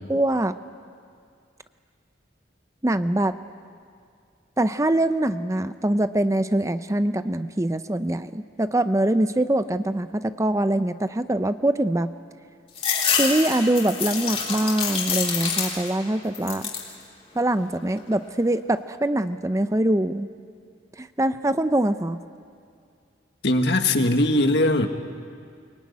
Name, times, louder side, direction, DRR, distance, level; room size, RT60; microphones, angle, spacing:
voice 1, 0.1-0.5 2.8-3.3 4.6-12.1 13.2-16.7 17.4-20.3 21.0-22.2, right 1 dB, 15° right, 11 dB, 0.6 m, -23 dB
sound 1, 12.8-16.0 16.3-16.9 17.4-18.1, left 6 dB, 35° left, 3.6 m, -27 dB
voice 2, 23.4-24.9, left 1 dB, 65° left, 6 dB, 1.7 m, -20 dB
24.0 x 22.5 x 9.7 m, 2.3 s
head